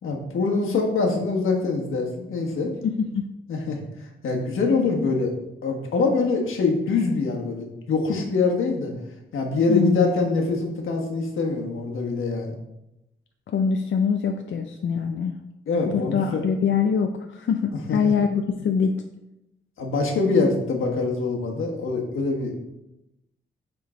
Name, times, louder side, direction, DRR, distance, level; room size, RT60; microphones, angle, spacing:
voice 1, 0.0-2.7 3.5-3.8 4.2-5.3 5.6-8.9 9.3-12.6 15.7-16.4 17.7-18.0 19.8-22.6, left 3 dB, 90° left, 1 dB, 1.3 m, -24 dB
voice 2, 2.8-3.2 9.7-10.1 13.5-15.3 15.8-18.9, left 6 dB, 70° left, 5 dB, 0.5 m, -24 dB
9.1 x 3.8 x 3.7 m, 0.90 s
cardioid pair, 95°, 20 cm